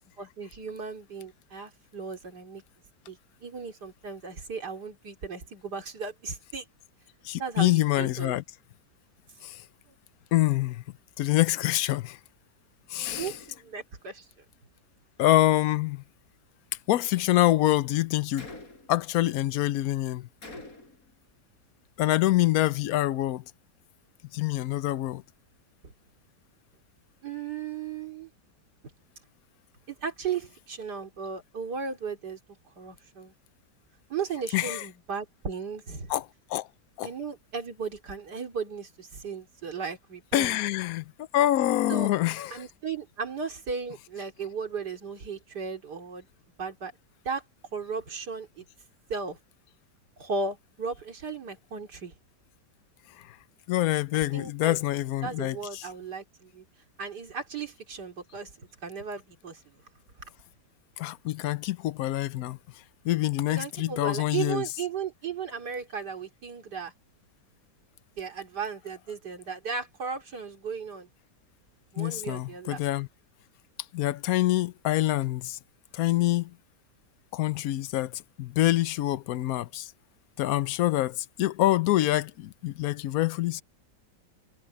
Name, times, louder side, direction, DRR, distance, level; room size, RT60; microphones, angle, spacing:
voice 1, 0.2-2.6 3.1-6.7 7.4-8.3 13.0-14.4 25.8-25.9 27.2-28.3 29.9-32.4 32.8-33.3 34.1-36.1 37.0-40.6 41.9-42.1 42.5-46.3 46.6-46.9 47.2-47.4 47.7-48.6 49.1-49.4 50.2-52.1 54.1-54.8 55.2-56.7 57.0-58.5 58.8-59.8 63.5-66.9 68.2-71.1 71.9-72.8, right 5 dB, 65° right, 3.4 m, -36 dB
voice 2, 7.2-8.4 9.4-9.6 10.3-10.8 11.2-12.2 12.9-13.3 15.2-16.0 16.9-18.5 18.9-20.3 22.0-23.4 24.3-25.2 34.5-34.8 36.1-36.2 36.5-36.7 37.0-37.1 40.3-42.6 53.2-53.4 53.7-55.9 61.0-62.6 63.0-64.6 72.0-73.1 73.9-75.6 75.9-76.5 77.3-79.9 80.4-83.6, left 15 dB, 65° left, 0.9 m, -26 dB
Gunshot gunfire, 13.0-13.7 18.4-19.0 20.4-21.1, left 2 dB, 50° left, 5.0 m, -44 dB
omnidirectional pair, 1.9 m